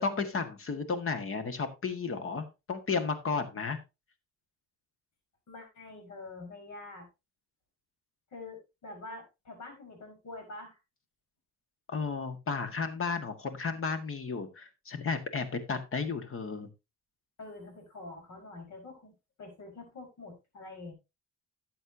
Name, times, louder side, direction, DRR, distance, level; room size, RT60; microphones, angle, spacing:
voice 1, 0.0-3.8 11.9-16.7, left 5 dB, 45° left, 10 dB, 1.8 m, -33 dB
voice 2, 5.5-7.1 8.3-10.8 17.4-19.1 19.4-20.9, left 2 dB, 70° left, 3 dB, 5.0 m, -46 dB
12.0 x 8.0 x 2.8 m, 0.25 s
cardioid pair, 90°, 30 cm